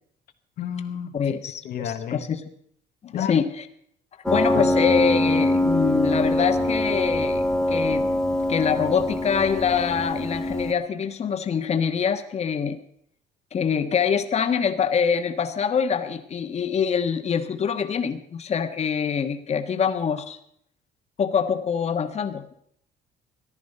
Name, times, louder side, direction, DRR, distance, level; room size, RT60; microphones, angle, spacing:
voice 1, 0.6-1.1 1.6-2.2 3.1-3.4 4.5-4.7, left 9 dB, 65° left, 5 dB, 1.2 m, -30 dB
voice 2, 1.1-2.4 3.1-3.7 4.3-8.1 8.5-12.8 13.5-20.4 21.2-22.5, left 7 dB, 40° left, 8 dB, 1.4 m, -25 dB
Piano, 4.3-10.7, left 1 dB, 5° left, 1.5 m, -23 dB
14.5 x 10.5 x 6.7 m, 0.69 s
cardioid pair, 110°, 17 cm